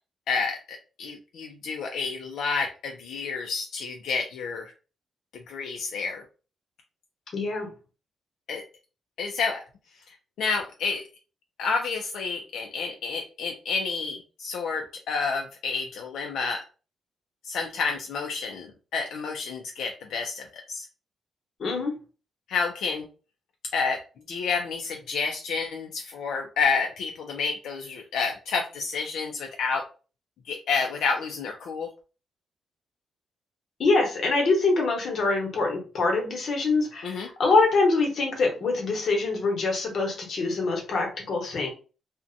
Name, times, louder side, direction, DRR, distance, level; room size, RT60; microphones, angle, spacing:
voice 1, 0.3-4.7 5.5-6.2 8.5-8.6 9.2-9.6 10.1-11.0 11.6-16.6 17.4-20.9 22.5-23.1 23.7-24.0 24.3-29.8 30.5-31.9 37.0-37.3, left 5 dB, 80° left, 2 dB, 0.4 m, -29 dB
voice 2, 7.3-7.7 21.6-21.9 33.8-41.7, left 3 dB, 50° left, 1 dB, 0.9 m, -24 dB
2.5 x 2.1 x 2.5 m, 0.34 s
cardioid pair, 155°, 0 cm